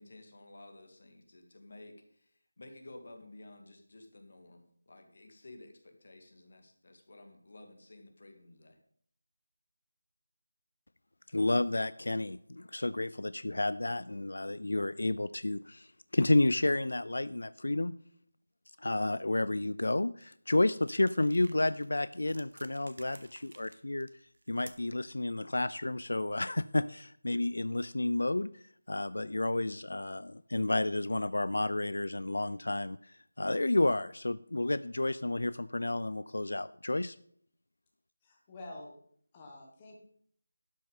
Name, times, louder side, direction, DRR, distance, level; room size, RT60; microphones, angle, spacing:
voice 1, 0.0-8.8, left 2 dB, 50° left, 5 dB, 1.9 m, -53 dB
voice 2, 11.3-18.0 18.8-24.1 24.5-37.2, left 2 dB, 80° left, 16 dB, 0.3 m, -31 dB
sound 1, 20.7-25.0, right 2 dB, 80° right, 1.2 m, -56 dB
voice 3, 38.2-39.0 39.3-40.0, left 2 dB, 15° left, -1 dB, 1.5 m, -48 dB
12.0 x 6.4 x 5.2 m, 0.63 s
figure-of-eight pair, 175°, 0 cm